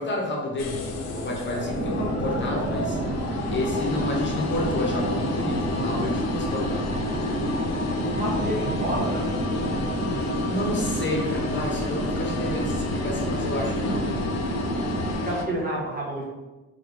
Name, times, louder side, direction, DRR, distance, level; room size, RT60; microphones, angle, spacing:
voice 1, 0.0-6.8 7.1-7.4 10.4-14.1, left 1 dB, 40° left, -2 dB, 1.1 m, -30 dB
sound 1, 0.6-15.4, left 3 dB, 60° left, 0.7 m, -31 dB
sound 2, 1.6-15.2, right 2 dB, 65° right, 1.3 m, -29 dB
voice 2, 8.1-9.7 15.0-16.2, right 1 dB, 30° right, -4 dB, 1.3 m, -30 dB
3.5 x 3.5 x 3.5 m, 1.1 s
cardioid pair, 90°, 30 cm